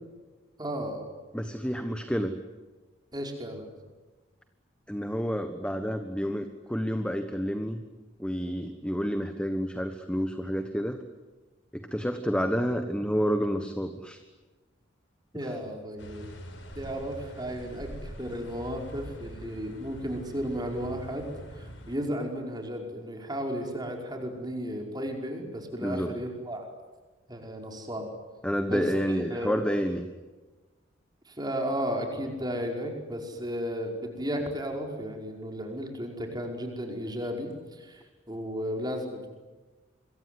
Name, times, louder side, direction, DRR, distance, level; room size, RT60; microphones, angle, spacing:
voice 1, 0.6-1.1 3.1-3.7 15.3-16.3 16.8-26.7 27.3-28.1 28.7-29.6 31.3-39.3, equal, 20° right, 2 dB, 5.3 m, -34 dB
voice 2, 1.3-2.3 4.9-7.8 8.2-11.0 11.7-14.2 15.3-15.5 25.8-26.1 28.4-30.0, equal, 5° left, 8 dB, 1.3 m, -29 dB
sound 1, 16.0-22.0, equal, 65° left, 5.8 m, -44 dB
26.5 x 23.0 x 9.7 m, 1.2 s
head